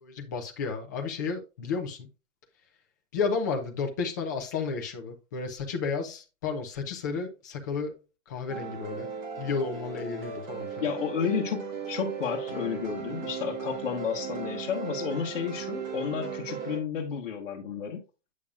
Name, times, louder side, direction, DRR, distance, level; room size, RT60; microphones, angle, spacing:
voice 1, 0.0-2.1 3.1-7.9 8.3-9.1 9.4-10.8, left 5 dB, 15° left, 0.6 m, -32 dB
sound 1, 8.5-16.8, right 6 dB, 35° right, 1.7 m, -37 dB
voice 2, 10.8-18.0, left 7 dB, 45° left, 1.4 m, -32 dB
8.6 x 6.4 x 2.4 m
hypercardioid pair, 175°, 37 cm